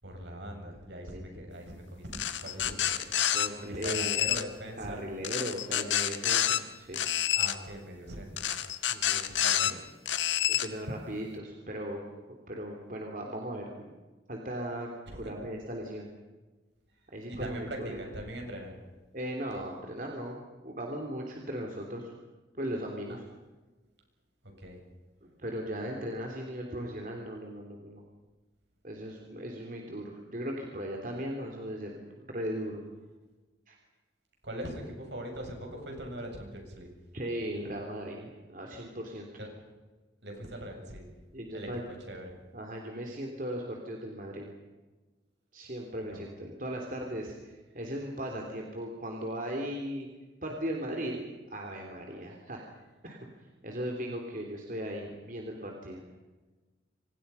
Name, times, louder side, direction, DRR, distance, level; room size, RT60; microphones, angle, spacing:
voice 1, 0.0-3.2 3.6-5.0 7.4-8.5 9.4-9.8 15.1-15.2 17.3-18.7 24.4-24.8 34.4-36.9 39.4-39.5 40.2-41.1 41.5-41.7 42.1-42.3 46.0-46.3, equal, 70° right, 2 dB, 7.5 m, -41 dB
voice 2, 1.1-1.5 2.6-3.0 3.3-4.2 4.8-7.0 8.9-9.4 10.5-12.0 12.3-13.9 14.3-16.1 17.1-18.0 19.1-20.4 20.6-22.1 22.5-23.2 25.2-28.0 28.8-32.8 33.7-33.8 37.1-39.3 41.3-41.8 42.5-44.5 45.5-50.1 50.4-52.6 53.0-53.2 53.6-56.0, equal, 45° right, 1 dB, 3.2 m, -38 dB
sound 1, 2.1-3.5 3.8-4.4 5.2-6.6 6.9-7.6 8.4-9.7 10.1-10.7, left 11 dB, 85° left, 1.7 m, -28 dB
29.0 x 25.5 x 5.7 m, 1.2 s
head